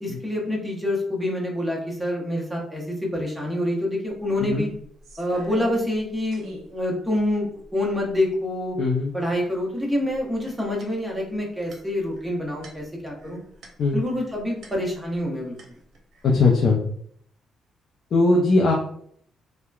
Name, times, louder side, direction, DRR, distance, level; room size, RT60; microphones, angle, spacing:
voice 1, 0.0-4.7 5.2-6.4 6.7-8.8 9.1-13.4 13.9-15.8, left 1 dB, ahead, -3 dB, 0.9 m, -26 dB
sound 1, 4.1-4.2 4.5-6.0 6.3-6.7 7.3-7.4 7.6-8.3 9.4-9.8 10.1-15.3 15.6-16.3, right 1 dB, 75° right, 0.6 m, -43 dB
voice 2, 8.8-9.1 13.8-14.0 16.2-16.8 18.1-18.7, left 3 dB, 60° left, -1 dB, 0.5 m, -19 dB
2.9 x 2.1 x 2.3 m, 0.64 s
cardioid pair, 90°, 0 cm